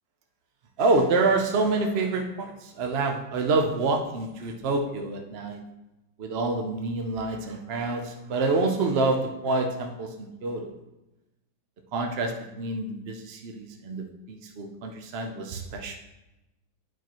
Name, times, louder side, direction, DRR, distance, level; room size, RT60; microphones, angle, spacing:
voice 1, 0.8-2.5 2.8-5.6 6.2-10.1 10.4-10.7 11.9-15.9, right 3 dB, 75° right, 3 dB, 0.5 m, -27 dB
11.0 x 4.8 x 3.0 m, 0.97 s
omnidirectional pair, 2.1 m